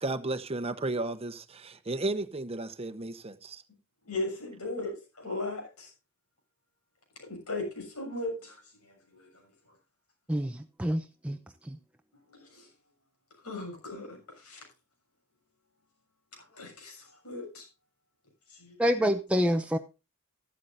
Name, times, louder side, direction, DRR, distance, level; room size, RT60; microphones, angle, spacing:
voice 1, 0.0-3.6, right 2 dB, 25° right, 1.0 m, -33 dB
voice 2, 4.0-5.9 7.2-9.3 12.3-12.7 13.4-14.6 16.5-17.7 18.5-18.8, left 2 dB, 80° left, 6.7 m, -38 dB
voice 3, 10.3-11.4 11.6-11.8 18.8-19.8, equal, 5° right, 0.6 m, -27 dB
14.0 x 12.0 x 2.6 m
head